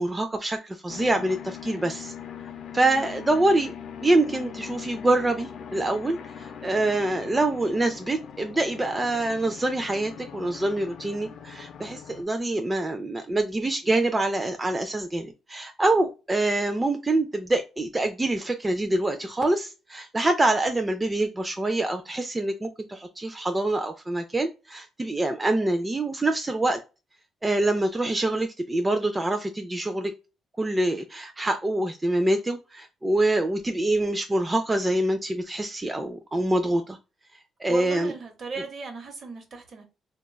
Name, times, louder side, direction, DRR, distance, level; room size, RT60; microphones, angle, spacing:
voice 1, 0.0-2.1 2.7-3.7 4.0-26.8 27.4-30.1 30.6-37.0 37.6-38.1, right 2 dB, 20° right, 0.3 m, -25 dB
sound 1, 0.9-12.2, left 8 dB, 70° left, 0.4 m, -41 dB
voice 2, 37.7-39.9, right 4 dB, 50° right, 0.8 m, -37 dB
3.0 x 2.2 x 2.2 m
cardioid pair, 90°, 0 cm